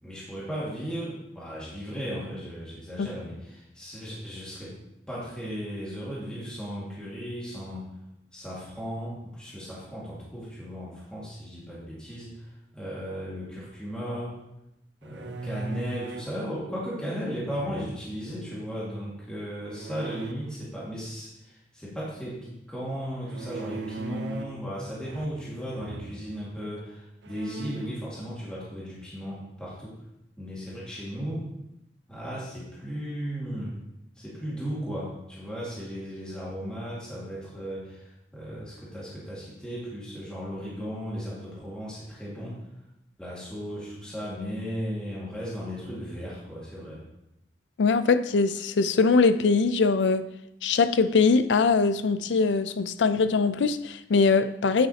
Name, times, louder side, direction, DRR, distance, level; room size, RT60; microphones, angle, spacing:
voice 1, 0.0-4.8 5.1-7.9 8.3-14.4 15.0-30.0 30.4-31.5 32.1-33.8 34.2-42.6 43.2-47.1, equal, 5° left, 1.9 m, -36 dB
sound 1, 15.0-16.4 17.5-18.2 19.7-20.3 23.3-24.6 25.0-25.5 25.8-26.2 26.8-26.9 27.2-28.0, right 3 dB, 80° right, 0.5 m, -38 dB
voice 2, 47.8-50.3 50.6-54.9, left 4 dB, 85° left, 0.4 m, -22 dB
9.3 x 7.0 x 2.8 m
head